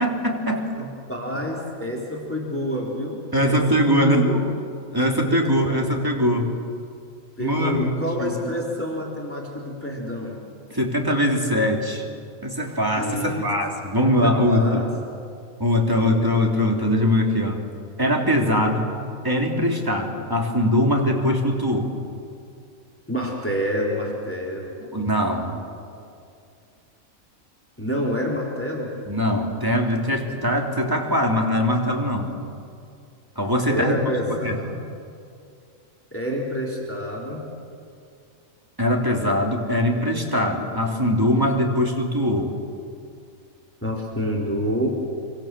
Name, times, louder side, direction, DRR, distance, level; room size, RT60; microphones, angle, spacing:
voice 1, 0.0-0.7 3.3-4.3 4.9-6.5 7.4-7.9 8.2-8.5 10.7-12.0 12.4-14.8 15.6-17.6 18.0-18.9 19.2-21.9 24.8-25.6 29.1-32.4 33.3-34.0 34.3-34.7 38.8-42.5, equal, 15° right, 1 dB, 3.3 m, -22 dB
voice 2, 0.8-3.6 3.9-4.4 5.2-5.7 7.4-10.4 13.0-13.5 14.2-14.9 15.9-16.2 23.1-24.8 25.9-26.0 27.8-28.9 33.7-34.6 36.1-37.4 43.8-44.9, equal, 10° left, -2 dB, 3.8 m, -28 dB
27.0 x 25.0 x 7.6 m, 2.4 s
omnidirectional pair, 1.4 m